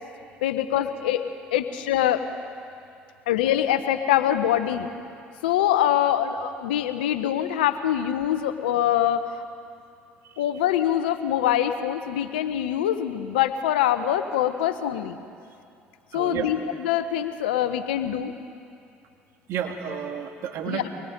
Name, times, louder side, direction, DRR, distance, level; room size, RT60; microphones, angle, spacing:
voice 1, 0.4-1.2 1.5-2.2 3.3-4.9 5.4-9.4 10.4-15.2 16.1-18.3 20.7-20.9, left 11 dB, 85° left, 10 dB, 0.9 m, -24 dB
voice 2, 16.1-16.5 19.5-20.9, right 8 dB, 65° right, 4 dB, 2.0 m, -31 dB
24.5 x 20.5 x 5.2 m, 2.4 s
hypercardioid pair, 60°, 5 cm